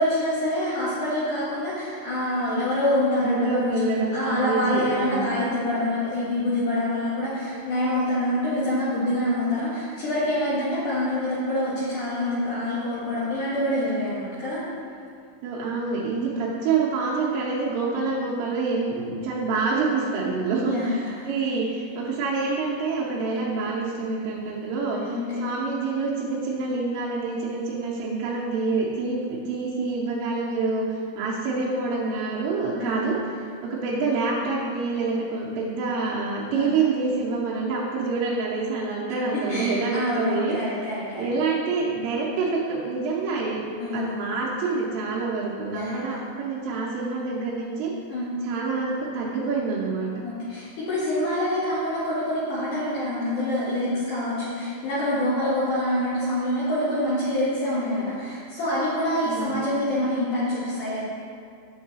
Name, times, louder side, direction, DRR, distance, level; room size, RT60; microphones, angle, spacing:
voice 1, 0.0-14.6 20.7-21.3 24.9-25.4 32.8-33.1 36.5-36.7 39.5-41.3 43.8-44.2 45.7-46.0 48.1-48.3 50.2-61.0, left 1 dB, 85° left, -9 dB, 1.8 m, -26 dB
voice 2, 3.2-5.4 15.4-33.2 33.6-40.6 41.2-43.6 43.9-47.9 48.4-50.1 59.3-59.7, right 4 dB, 85° right, -6 dB, 2.8 m, -27 dB
6.8 x 6.7 x 2.7 m, 2.3 s
omnidirectional pair, 5.2 m